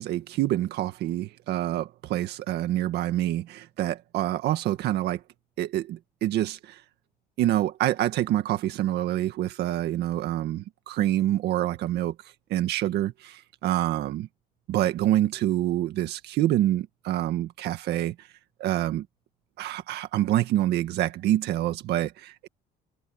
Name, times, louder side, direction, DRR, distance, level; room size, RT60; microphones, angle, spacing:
voice 1, 0.0-5.2 5.6-6.8 7.4-12.2 12.5-14.3 14.7-18.3 18.6-19.1 19.6-22.5, right 13 dB, 75° right, 1.9 m, -26 dB
cardioid pair, 110°, 17 cm